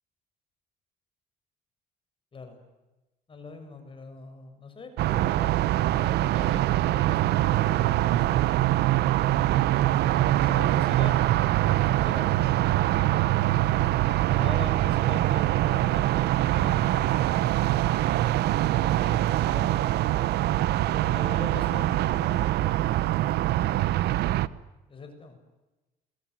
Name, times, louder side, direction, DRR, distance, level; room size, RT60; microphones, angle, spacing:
voice 1, 3.3-8.6 10.4-11.2 11.7-12.3 14.3-17.6 18.6-19.9 20.7-22.4 24.2-24.3 24.9-25.4, left 4 dB, 30° left, 6 dB, 6.7 m, -43 dB
sound 1, 5.0-24.5, right 15 dB, 75° right, 1.0 m, -24 dB
sound 2, 9.2-11.0 11.8-13.7 14.3-16.0 16.3-16.9, equal, 5° right, 5.7 m, -53 dB
27.5 x 23.0 x 9.4 m, 1.1 s
cardioid pair, 110°, 17 cm